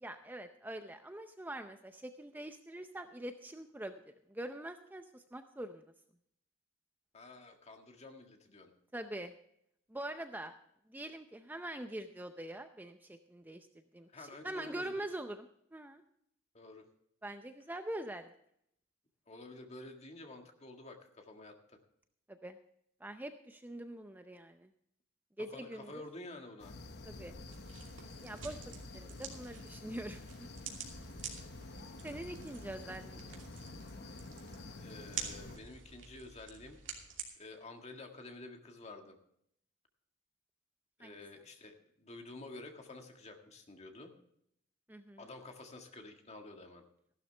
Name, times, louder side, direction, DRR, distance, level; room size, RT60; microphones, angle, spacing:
voice 1, 0.0-3.9 4.3-5.9 8.9-9.3 9.9-10.5 10.9-13.7 13.9-16.0 17.2-18.3 22.3-22.6 23.0-24.7 25.4-26.0 27.0-27.4 28.2-28.6 28.9-30.3 32.0-33.5 41.0-41.2 44.9-45.3, right 1 dB, 10° right, 7 dB, 0.6 m, -44 dB
voice 2, 7.1-8.7 14.1-15.1 16.5-16.9 19.3-21.8 25.5-26.7 34.8-36.8 37.3-39.2 41.0-44.1 45.2-46.8, left 2 dB, 35° left, 4 dB, 1.7 m, -50 dB
sound 1, 26.6-35.6, left 2 dB, 60° left, 1.0 m, -49 dB
sound 2, 27.4-37.3, right 7 dB, 75° right, 2.7 m, -48 dB
14.5 x 12.0 x 3.3 m, 0.73 s
head